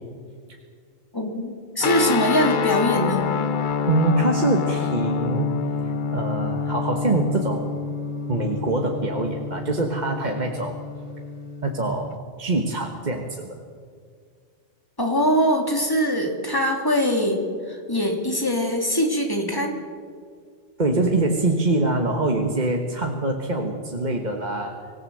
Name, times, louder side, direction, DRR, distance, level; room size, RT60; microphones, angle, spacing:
voice 1, 1.1-3.3 15.0-17.4 17.7-19.8, equal, 20° left, 2 dB, 3.1 m, -22 dB
sound 1, 1.8-12.1, left 6 dB, 50° left, 0.8 m, -27 dB
voice 2, 3.9-5.5 5.8-7.8 8.3-10.8 11.6-13.6 20.8-24.9, right 2 dB, 40° right, 2 dB, 1.6 m, -24 dB
25.0 x 16.5 x 7.8 m, 2.1 s
omnidirectional pair, 1.1 m